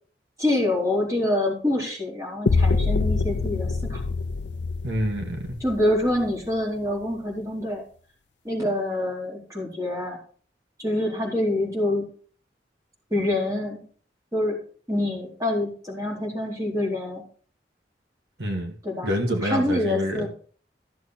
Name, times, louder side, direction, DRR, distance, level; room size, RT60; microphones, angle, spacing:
voice 1, 0.4-4.0 5.6-7.8 8.4-10.2 10.8-12.1 13.1-13.8 14.3-14.6 14.9-17.2 18.8-19.1 19.4-20.3, left 1 dB, 20° right, -2 dB, 4.1 m, -26 dB
sound 1, 2.5-6.5, left 3 dB, 80° left, 0.5 m, -25 dB
voice 2, 4.8-5.6 18.4-18.7 19.0-20.3, equal, 70° right, 2 dB, 1.9 m, -27 dB
14.5 x 7.1 x 4.3 m, 0.43 s
head